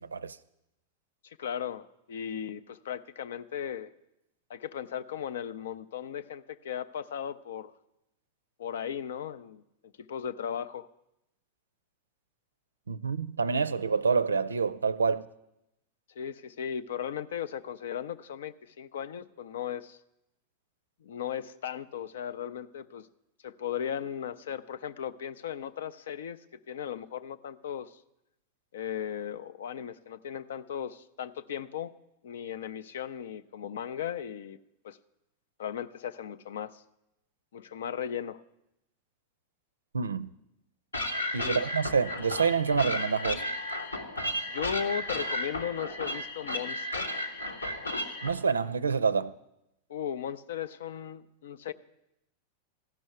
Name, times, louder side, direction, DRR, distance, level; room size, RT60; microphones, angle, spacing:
voice 1, 1.2-3.9 4.5-7.7 8.6-9.6 10.0-10.9 16.2-20.0 21.0-23.1 23.4-26.4 26.7-28.0 28.7-31.9 32.2-34.6 34.8-35.0 35.6-36.8 37.5-38.4 41.4-41.6 44.5-47.1 49.9-51.7, left 8 dB, 60° left, 0.5 m, -36 dB
voice 2, 12.9-15.3 39.9-40.3 41.3-43.4 48.2-49.3, right 5 dB, 75° right, 0.4 m, -27 dB
sound 1, 40.9-48.3, left 1 dB, 80° left, 1.2 m, -34 dB
14.5 x 6.2 x 9.2 m
figure-of-eight pair, 90°, 0 cm